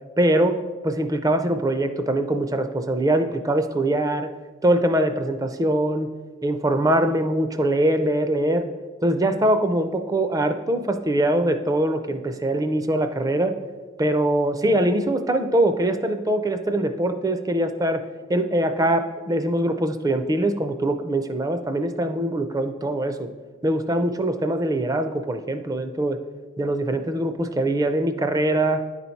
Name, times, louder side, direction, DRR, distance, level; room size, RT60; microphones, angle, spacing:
voice 1, 0.2-0.6 0.8-4.3 4.6-6.1 6.4-8.7 9.0-13.5 14.0-18.0 18.3-23.3 23.6-26.2 26.6-28.8, right 1 dB, 15° right, 8 dB, 0.4 m, -22 dB
10.0 x 4.1 x 4.5 m, 1.4 s
head